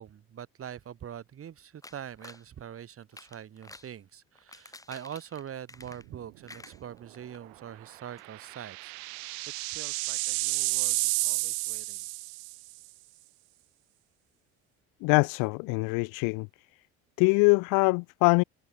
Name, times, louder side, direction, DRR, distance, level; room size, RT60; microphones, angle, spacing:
voice 1, 0.0-9.2 9.7-12.1, right 9 dB, 45° right, 3.5 m, -44 dB
sound 1, 1.8-2.5 3.0-3.9 4.4-6.2 6.5-7.4 7.8-7.9 8.2-8.3, left 2 dB, 10° left, 2.4 m, -50 dB
sound 2, 5.8-6.2 6.5-6.6 8.1-12.7, right 32 dB, 90° right, 1.1 m, -31 dB
voice 2, 15.0-16.5 17.2-18.4, left 32 dB, 75° left, 0.5 m, -23 dB
supercardioid pair, 95°, 32 cm